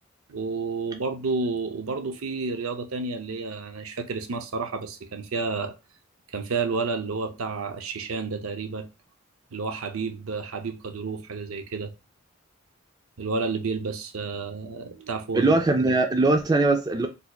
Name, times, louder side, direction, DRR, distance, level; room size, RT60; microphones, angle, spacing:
voice 1, 0.3-5.7 6.3-8.9 9.5-11.9 13.2-15.5 15.9-16.0, right 4 dB, 85° right, 0.6 m, -30 dB
voice 2, 15.3-17.1, right 2 dB, 20° right, 0.3 m, -21 dB
4.1 x 2.7 x 2.3 m
head